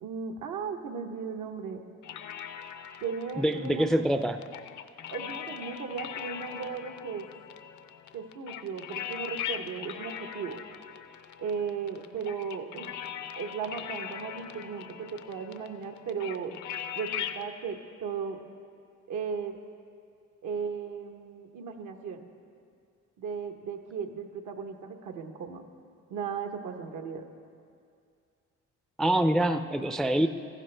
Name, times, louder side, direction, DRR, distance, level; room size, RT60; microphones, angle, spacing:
voice 1, 0.0-1.8 3.0-4.0 5.1-7.3 8.1-10.6 11.4-12.9 13.4-16.5 17.0-18.4 19.1-19.6 20.4-22.3 23.2-25.6 26.1-27.2, right 6 dB, 80° right, 5 dB, 1.0 m, -36 dB
sound 1, 2.0-17.4, left 9 dB, 75° left, 0.6 m, -40 dB
voice 2, 3.4-4.4 29.0-30.3, right 1 dB, ahead, 9 dB, 0.3 m, -25 dB
14.0 x 13.0 x 3.3 m, 2.3 s
cardioid pair, 90°, 30 cm